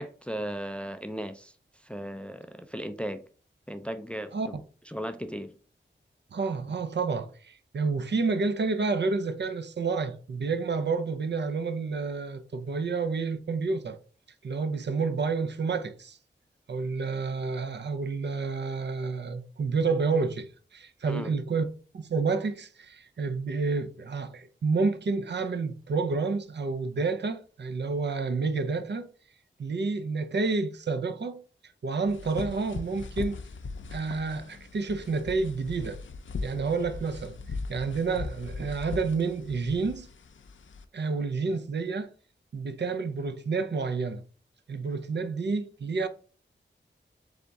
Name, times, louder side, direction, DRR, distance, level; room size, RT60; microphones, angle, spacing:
voice 1, 0.0-1.5 1.8-3.2 3.7-4.6 4.9-5.5 21.1-21.3, equal, 5° left, 0.3 m, -36 dB
voice 2, 6.3-14.0 14.4-16.2 16.7-21.7 21.9-29.1 29.6-31.4 31.8-33.4 33.9-36.0 36.4-37.3 37.7-40.1 40.9-42.1 42.5-44.2 44.7-46.1, right 4 dB, 65° right, 0.5 m, -29 dB
sound 1, 32.1-40.8, left 4 dB, 75° left, 0.5 m, -39 dB
3.5 x 3.4 x 4.0 m
wide cardioid pair, 95°, 20 cm